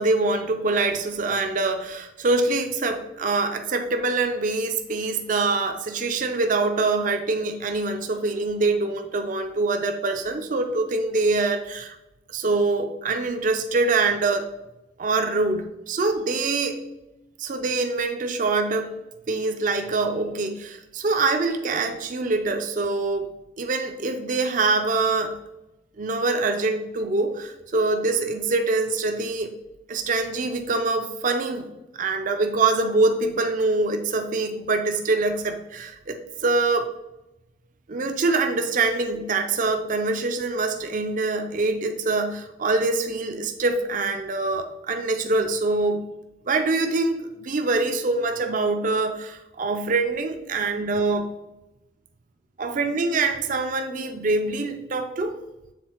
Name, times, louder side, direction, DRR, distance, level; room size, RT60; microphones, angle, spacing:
voice 1, 0.0-12.0 12.3-14.5 15.0-16.8 17.4-18.9 19.3-23.3 23.6-25.4 26.0-29.5 29.9-31.7 32.0-36.9 37.9-46.0 46.5-51.3 52.6-55.4, right 3 dB, 45° right, 6 dB, 0.5 m, -24 dB
7.4 x 3.7 x 4.4 m, 0.95 s
head